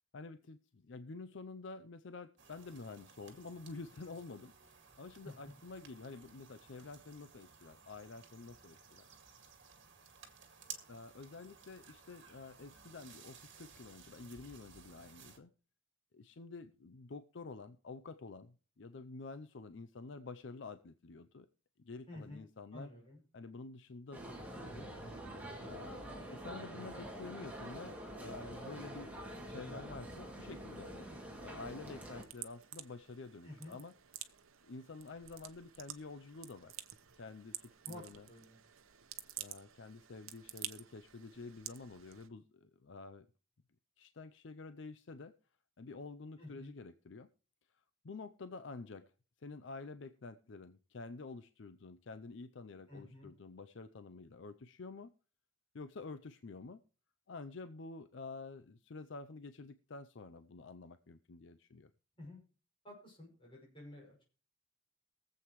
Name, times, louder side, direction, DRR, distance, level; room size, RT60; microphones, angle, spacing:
voice 1, 0.1-4.5 5.0-9.1 10.9-15.5 16.1-21.5 21.8-22.9 23.3-24.9 25.6-29.1 29.5-31.1 31.4-33.9 34.7-36.7 37.1-38.3 39.4-43.3 44.0-45.3 45.8-47.3 48.0-49.1 49.4-55.1 55.7-56.8 57.3-61.9, left 3 dB, 60° left, 10 dB, 0.5 m, -49 dB
sound 1, 2.4-15.4, right 6 dB, 60° right, 2.0 m, -57 dB
voice 2, 22.1-22.4 22.7-23.2 33.4-33.8 37.8-38.6 46.4-46.7 52.9-53.3 62.2-62.4 62.8-64.2, left 1 dB, 25° left, -3 dB, 6.1 m, -51 dB
sound 2, 24.1-32.2, right 1 dB, 5° right, 2.3 m, -46 dB
sound 3, 31.6-42.3, right 13 dB, 85° right, 0.9 m, -51 dB
22.5 x 7.8 x 3.1 m, 0.37 s
head